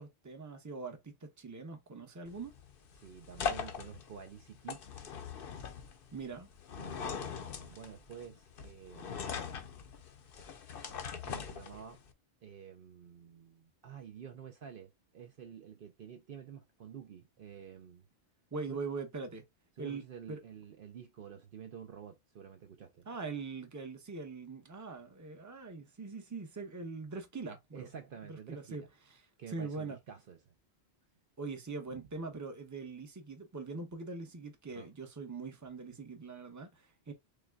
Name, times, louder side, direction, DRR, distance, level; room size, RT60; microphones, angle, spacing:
voice 1, 0.0-2.5 6.1-6.5 18.5-19.4 19.8-20.0 20.3-20.4 23.1-27.9 28.3-29.2 29.5-30.0 31.4-37.1, right 4 dB, 20° right, 0.7 m, -42 dB
sound 1, 2.2-12.1, left 6 dB, 60° left, 0.8 m, -41 dB
voice 2, 3.0-4.8 6.8-9.6 10.7-12.0 12.4-18.1 18.7-18.8 19.8-23.1 27.7-28.9 29.4-30.5 31.9-32.0 34.7-34.9, right 8 dB, 60° right, 0.7 m, -50 dB
6.4 x 2.2 x 2.3 m
omnidirectional pair, 1.1 m